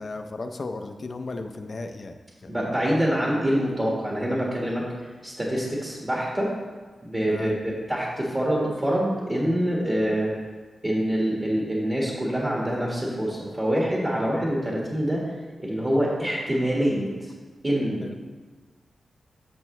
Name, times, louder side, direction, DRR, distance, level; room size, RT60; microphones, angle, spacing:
voice 1, 0.0-2.2 2.4-2.6 7.3-7.5 18.0-18.1, left 3 dB, 45° left, 6 dB, 0.6 m, -35 dB
voice 2, 2.5-4.8 5.2-6.5 7.0-10.3 10.8-15.3 15.6-17.3 17.6-18.2, equal, 25° right, -4 dB, 1.7 m, -25 dB
12.0 x 6.5 x 3.2 m, 1.4 s
wide cardioid pair, 130°, 0 cm